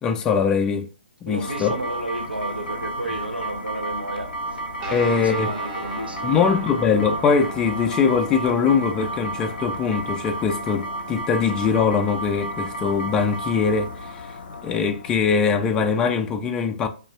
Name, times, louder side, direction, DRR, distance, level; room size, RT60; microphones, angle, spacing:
voice 1, 0.0-0.9 1.2-1.8 4.9-5.5 6.2-14.3 14.6-16.9, left 6 dB, 15° left, 0.3 m, -22 dB
voice 2, 1.3-4.6 4.9-6.6, right 1 dB, 90° right, 0.6 m, -32 dB
sound 1, 1.4-16.3, right 1 dB, 70° left, 0.6 m, -33 dB
Guitar, 4.8-14.7, right 3 dB, 25° right, 0.6 m, -40 dB
2.4 x 2.3 x 3.2 m
figure-of-eight pair, 130°, 5 cm